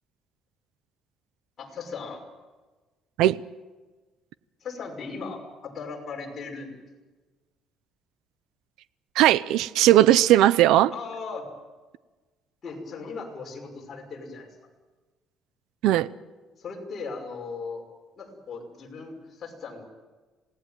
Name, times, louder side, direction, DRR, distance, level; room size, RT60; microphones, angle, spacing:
voice 1, 1.6-2.2 4.6-6.8 10.9-11.5 12.6-14.5 16.6-17.8 18.2-19.8, left 4 dB, 30° left, 0 dB, 5.9 m, -37 dB
voice 2, 9.1-10.9 15.8-16.1, right 13 dB, 80° right, 17 dB, 0.7 m, -18 dB
27.0 x 18.0 x 9.2 m, 1.3 s
cardioid pair, 160°, 0 cm